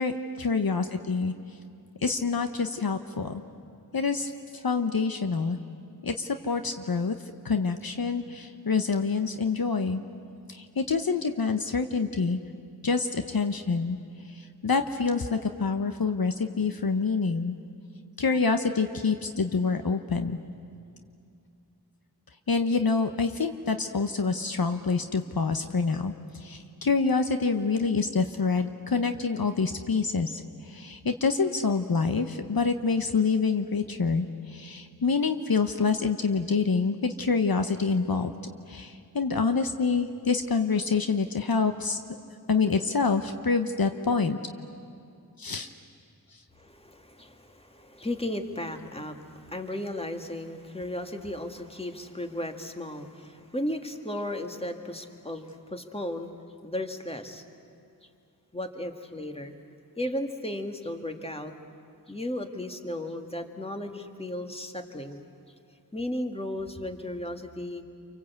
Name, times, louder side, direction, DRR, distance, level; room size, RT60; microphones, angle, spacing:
voice 1, 0.0-1.3 2.0-3.4 3.9-5.6 6.0-7.1 7.4-10.0 10.5-12.4 12.8-14.0 14.3-17.5 18.2-20.4 22.5-38.3 38.7-42.0 42.5-44.4 45.4-45.7, left 4 dB, 65° left, 7 dB, 1.0 m, -27 dB
voice 2, 46.6-56.3 56.6-57.4 58.5-59.5 60.0-61.5 62.1-65.2 65.9-67.8, left 1 dB, 15° left, 5 dB, 2.0 m, -35 dB
29.0 x 24.5 x 8.2 m, 2.5 s
wide cardioid pair, 45°, 38 cm